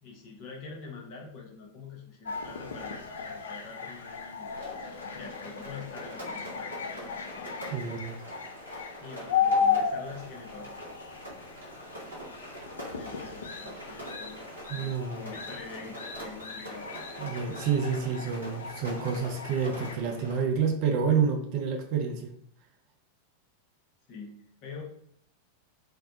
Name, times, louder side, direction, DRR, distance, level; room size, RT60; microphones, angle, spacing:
voice 1, 0.0-4.8 5.1-6.7 9.0-10.8 12.0-12.1 12.9-16.9 24.1-24.8, left 4 dB, 45° left, 0 dB, 0.7 m, -45 dB
sound 1, 2.3-20.0, left 6 dB, 65° left, 0.3 m, -35 dB
Rain, 4.6-20.4, equal, 80° right, 0.8 m, -44 dB
voice 2, 7.7-8.2 14.7-15.2 17.2-22.3, right 6 dB, 45° right, 3 dB, 0.4 m, -28 dB
2.5 x 2.1 x 2.7 m, 0.66 s
figure-of-eight pair, 90°, 0 cm